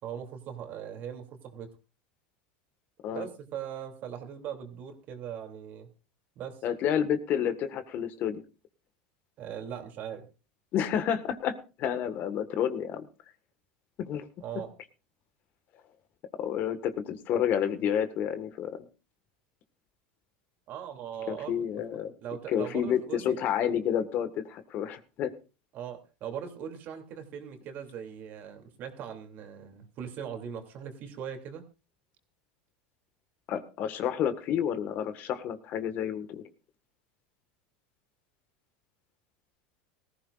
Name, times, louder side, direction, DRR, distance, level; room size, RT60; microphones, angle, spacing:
voice 1, 0.0-1.7 3.1-5.9 6.4-6.6 9.4-10.3 14.4-14.7 20.7-21.5 22.2-23.3 25.7-31.6, right 8 dB, 50° right, 5 dB, 2.8 m, -40 dB
voice 2, 6.6-8.4 10.7-13.1 14.0-14.2 16.4-18.7 21.3-22.1 22.5-25.3 33.5-36.4, left 9 dB, 50° left, 11 dB, 1.6 m, -30 dB
18.5 x 15.0 x 2.5 m, 0.32 s
hypercardioid pair, 100°, 4 cm